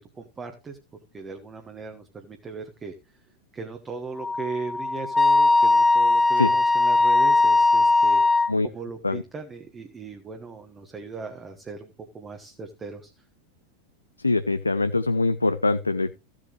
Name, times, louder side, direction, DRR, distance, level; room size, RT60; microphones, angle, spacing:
voice 1, 0.1-0.8 1.1-2.9 3.5-8.4 8.7-13.1, right 4 dB, 20° right, 5 dB, 1.3 m, -38 dB
Wind instrument woodwind instrument, 4.2-8.5, left 3 dB, 5° left, 0.6 m, -19 dB
voice 2, 14.2-16.1, left 3 dB, 80° left, 11 dB, 0.4 m, -23 dB
15.0 x 7.6 x 3.1 m, 0.28 s
figure-of-eight pair, 90°, 0 cm